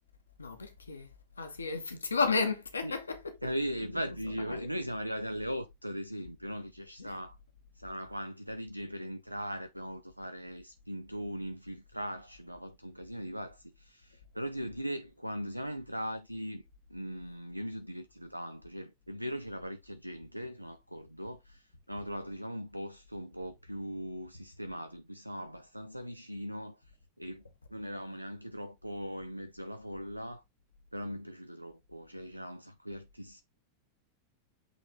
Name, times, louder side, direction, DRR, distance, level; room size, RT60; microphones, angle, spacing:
voice 1, 0.4-1.1 1.4-3.2 4.5-4.7 7.0-7.2, left 4 dB, 75° left, 0.8 m, -32 dB
voice 2, 3.4-7.4 7.7-16.6 16.9-27.4 27.7-30.4 30.9-33.4, equal, 90° right, 0.4 m, -39 dB
8.1 x 3.3 x 3.6 m
figure-of-eight pair, 90°, 0 cm